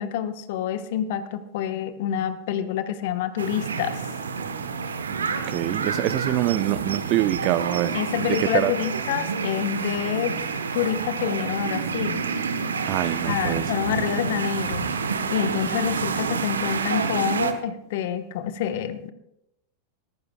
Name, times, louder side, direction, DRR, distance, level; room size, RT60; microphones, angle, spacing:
voice 1, 0.0-4.0 7.9-12.3 13.3-14.9 15.3-19.1, left 9 dB, 55° left, 1.2 m, -27 dB
sound 1, 3.4-17.5, right 5 dB, 80° right, 1.1 m, -28 dB
voice 2, 5.5-8.0 8.3-8.7 12.9-13.6, right 15 dB, 45° right, 0.7 m, -25 dB
21.5 x 15.0 x 2.3 m
figure-of-eight pair, 95°, 0 cm